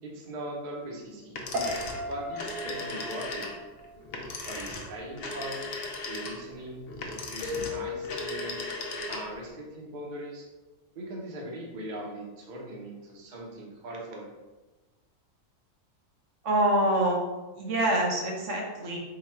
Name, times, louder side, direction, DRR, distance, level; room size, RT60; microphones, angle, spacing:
voice 1, 0.0-1.4 1.6-3.5 4.4-5.6 6.1-6.9 7.3-8.7 9.1-10.5 10.9-14.3, right 1 dB, 45° right, -2 dB, 0.8 m, -40 dB
sound 1, 1.3-9.5, left 2 dB, 60° left, 0.7 m, -37 dB
Piano, 1.5-4.6 4.9-5.3, equal, 90° right, 1.2 m, -37 dB
Keyboard (musical), 7.4-9.4, left 6 dB, 75° left, 1.1 m, -38 dB
voice 2, 16.4-17.2 17.6-19.0, right 1 dB, 70° right, -1 dB, 1.0 m, -25 dB
3.9 x 2.3 x 4.3 m, 1.2 s
omnidirectional pair, 1.4 m